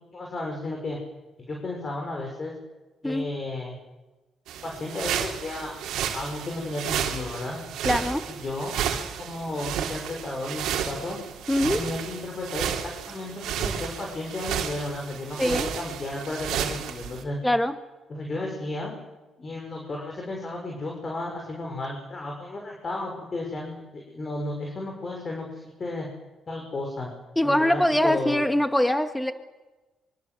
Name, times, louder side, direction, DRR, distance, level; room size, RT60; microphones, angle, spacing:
voice 1, 0.1-1.0 1.5-2.5 3.0-3.7 4.6-5.7 6.1-7.6 8.3-8.8 9.2-11.2 11.7-17.4 18.1-18.9 19.4-26.1 26.5-27.1 27.4-28.4, left 2 dB, 35° left, 0 dB, 6.8 m, -33 dB
sound 1, 4.5-17.2, right 9 dB, 85° right, 3.4 m, -32 dB
voice 2, 7.8-8.2 11.5-11.8 15.4-15.7 17.4-17.8 27.4-29.3, left 1 dB, 5° left, 7 dB, 2.1 m, -23 dB
26.0 x 24.5 x 8.1 m, 1.1 s
cardioid pair, 90°, 0 cm